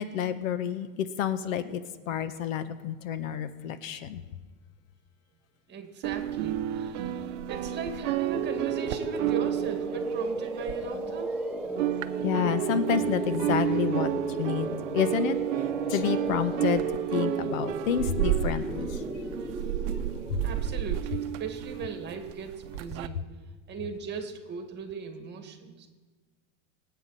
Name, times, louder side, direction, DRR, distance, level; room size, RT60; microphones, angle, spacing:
voice 1, 0.0-1.8 2.1-4.2 12.2-14.1 14.4-15.4 15.9-16.8 17.1-18.9, left 8 dB, 75° left, 12 dB, 1.1 m, -29 dB
voice 2, 5.7-11.4 20.4-23.2 23.7-25.9, right 5 dB, 25° right, 5 dB, 1.9 m, -38 dB
sound 1, 6.0-11.4 11.6-23.1, right 12 dB, 60° right, 0.8 m, -31 dB
sound 2, 8.3-21.1, right 3 dB, ahead, 1.0 m, -34 dB
24.5 x 8.2 x 4.2 m, 1.4 s
supercardioid pair, 135°, 41 cm